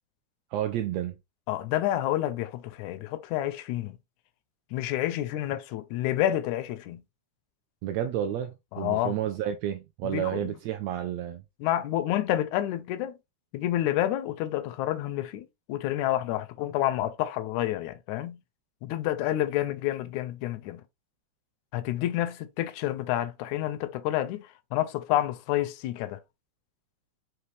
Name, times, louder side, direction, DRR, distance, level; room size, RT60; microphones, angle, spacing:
voice 1, 0.5-1.2 7.8-11.4, right 11 dB, 85° right, 1.5 m, -31 dB
voice 2, 1.5-4.0 4.7-7.0 8.7-9.2 10.0-10.5 11.6-13.2 13.5-18.4 18.8-20.8 21.7-26.2, left 13 dB, 80° left, 1.8 m, -29 dB
5.7 x 2.5 x 3.2 m
omnidirectional pair, 3.6 m